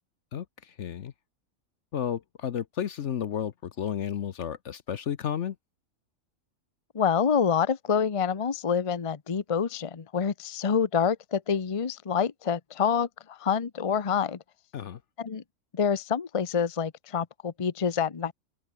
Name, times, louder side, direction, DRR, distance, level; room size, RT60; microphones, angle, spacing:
voice 1, 0.3-1.1 1.9-5.6 14.7-15.0, left 9 dB, 60° left, 1.0 m, -32 dB
voice 2, 6.9-14.4 15.2-15.4 15.7-18.3, left 7 dB, 30° left, 0.7 m, -27 dB
open air
omnidirectional pair, 1.5 m